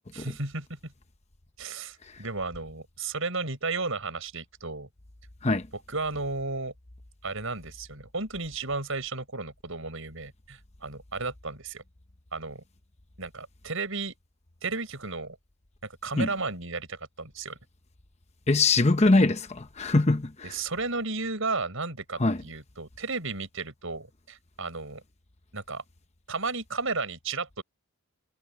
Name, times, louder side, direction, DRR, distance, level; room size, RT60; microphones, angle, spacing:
voice 1, 0.1-0.9 1.6-4.9 5.7-6.7 7.2-11.8 12.3-12.6 13.2-14.1 14.6-15.4 15.8-17.6 20.4-25.0 25.5-25.8 26.3-27.6, right 3 dB, 60° right, 7.2 m, -33 dB
voice 2, 18.5-20.5 22.2-22.4, left 2 dB, 30° left, 0.9 m, -22 dB
head